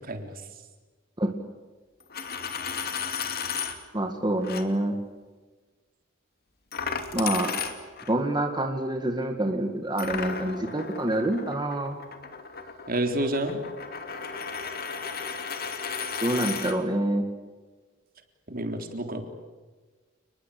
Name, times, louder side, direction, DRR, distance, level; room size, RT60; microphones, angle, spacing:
Coin (dropping), 2.0-3.8 4.4-4.6 6.7-8.1 10.0-16.8, left 6 dB, 50° left, 2.7 m, -34 dB
voice 1, 3.9-5.0 7.1-7.5 8.1-12.0 16.2-17.2, right 1 dB, 20° right, 4 dB, 2.0 m, -26 dB
voice 2, 12.9-13.6 18.5-19.2, right 1 dB, 45° right, 5 dB, 3.7 m, -29 dB
30.0 x 21.0 x 8.5 m, 1.3 s
head